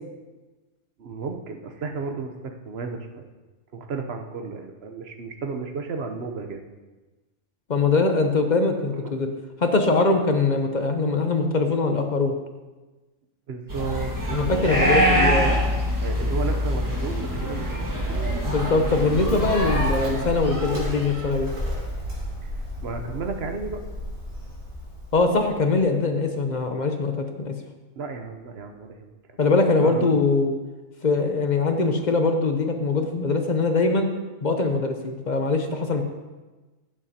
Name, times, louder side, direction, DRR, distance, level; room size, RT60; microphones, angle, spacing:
voice 1, 1.0-3.3 3.7-6.6 9.0-9.1 13.5-15.4 16.0-18.2 22.4-23.8 28.0-29.4 29.8-30.2, right 4 dB, 55° right, 5 dB, 0.9 m, -33 dB
voice 2, 7.7-9.3 9.6-12.3 14.3-15.5 18.4-21.5 25.1-27.5 29.4-30.5 31.0-34.1 34.4-36.0, left 3 dB, 45° left, 5 dB, 0.7 m, -22 dB
sound 1, 13.7-21.3, equal, 15° right, 1.3 m, -25 dB
Bird, 18.0-25.8, equal, 70° right, 3.2 m, -32 dB
15.0 x 7.4 x 2.8 m, 1.2 s
omnidirectional pair, 1.4 m